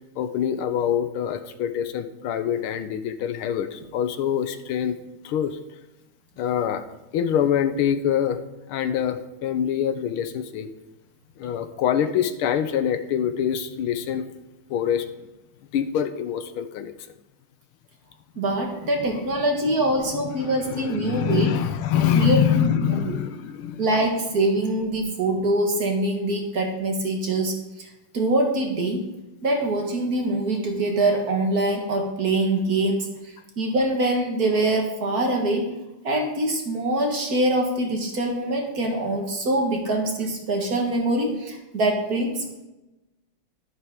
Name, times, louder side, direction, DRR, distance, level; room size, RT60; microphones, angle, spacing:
voice 1, 0.2-5.0 5.2-5.6 6.4-6.8 7.1-10.7 11.4-14.3 14.7-15.1 15.7-16.9 19.0-19.4 20.0-23.8, left 9 dB, 90° left, 10 dB, 1.7 m, -25 dB
voice 2, 18.4-21.5 22.1-23.2 23.8-27.9 28.1-29.0 29.4-33.1 33.6-35.7 36.0-42.6, right 2 dB, 50° right, 2 dB, 2.0 m, -24 dB
11.0 x 10.0 x 3.7 m, 0.99 s
omnidirectional pair, 2.3 m